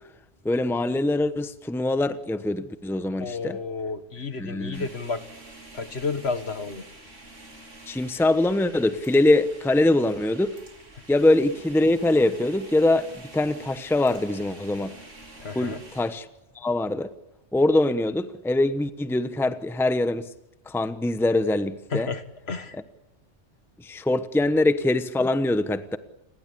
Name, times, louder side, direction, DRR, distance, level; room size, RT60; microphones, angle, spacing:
voice 1, 0.4-3.6 4.4-4.9 7.9-10.5 11.1-14.9 15.5-16.3 16.5-17.1 17.5-20.3 20.7-22.1 22.7-22.8 23.8-26.0, left 2 dB, ahead, 0.9 m, -23 dB
voice 2, 3.2-5.2 5.7-6.8 15.4-15.8 21.9-22.8, left 4 dB, 60° left, 1.8 m, -31 dB
sound 1, 4.7-16.1, right 2 dB, 85° right, 4.2 m, -47 dB
28.5 x 21.5 x 8.5 m
omnidirectional pair, 1.2 m